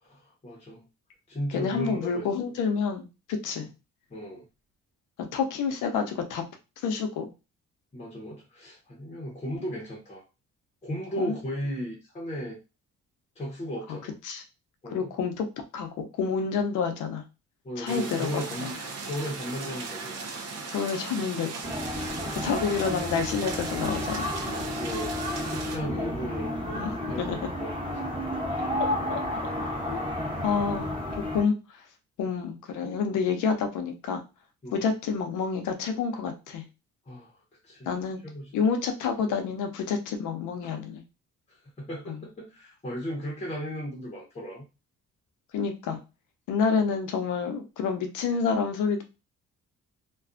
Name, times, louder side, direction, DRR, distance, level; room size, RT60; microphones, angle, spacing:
voice 1, 0.0-0.9 1.3-2.3 4.1-4.5 7.9-10.2 10.8-12.6 13.4-14.2 14.8-15.1 17.6-18.7 19.0-20.1 22.1-22.3 24.5-25.1 25.4-27.7 28.0-28.1 34.6-34.8 37.1-37.4 37.6-37.9 38.2-38.6 40.6-40.7 41.5-44.6, equal, 20° left, -2 dB, 0.8 m, -36 dB
voice 2, 1.5-3.7 5.2-6.4 6.8-7.3 11.2-11.4 14.2-14.4 14.9-15.5 15.7-17.2 17.8-18.3 18.6-18.7 20.7-21.5 21.9-24.3 25.9-26.1 26.7-26.9 27.2-27.4 29.1-29.2 29.9-30.0 30.4-30.9 31.3-31.6 32.2-34.2 34.7-36.6 37.9-38.2 38.5-41.0 42.1-42.2 45.5-46.0 46.5-49.0, left 5 dB, 85° left, 6 dB, 0.6 m, -28 dB
sound 1, 17.9-25.8, right 4 dB, 55° right, 0.6 m, -37 dB
sound 2, 21.6-31.4, left 1 dB, 15° right, 1.1 m, -32 dB
2.5 x 2.3 x 2.4 m, 0.29 s
cardioid pair, 90°, 30 cm